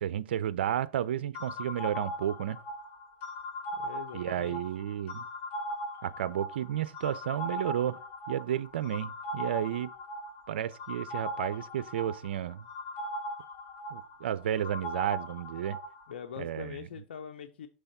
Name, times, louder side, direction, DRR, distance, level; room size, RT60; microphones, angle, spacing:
voice 1, 0.0-2.6 4.1-5.2 6.0-8.0 8.3-9.9 10.5-12.7 13.9-15.8 16.4-16.7, right 10 dB, 85° right, 0.4 m, -32 dB
sound 1, 1.3-16.1, equal, 35° left, 2.0 m, -39 dB
voice 2, 3.7-4.6 16.1-17.7, left 7 dB, 90° left, 0.6 m, -42 dB
6.3 x 3.4 x 5.4 m
supercardioid pair, 130°, 6 cm